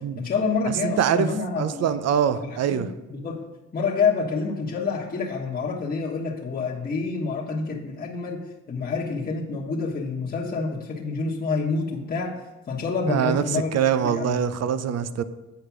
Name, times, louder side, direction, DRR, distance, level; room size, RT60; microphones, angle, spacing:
voice 1, 0.2-2.0 2.3-3.4 3.7-8.4 8.7-12.3 12.7-14.4, left 4 dB, 30° left, 1.3 m, -28 dB
voice 2, 0.8-1.3 1.6-2.9 13.1-15.2, right 8 dB, 55° right, 0.6 m, -24 dB
8.5 x 4.9 x 6.0 m
cardioid pair, 90°, 30 cm